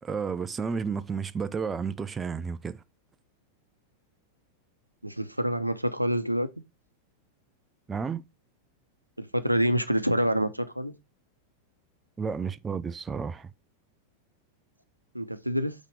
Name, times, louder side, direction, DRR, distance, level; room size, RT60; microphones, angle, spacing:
voice 1, 0.0-2.8 7.9-8.2 12.2-13.5, right 5 dB, 15° right, 0.3 m, -32 dB
voice 2, 5.0-6.5 9.2-10.9 15.1-15.7, equal, 90° right, 0.6 m, -27 dB
5.7 x 3.6 x 5.2 m
figure-of-eight pair, 90°, 0 cm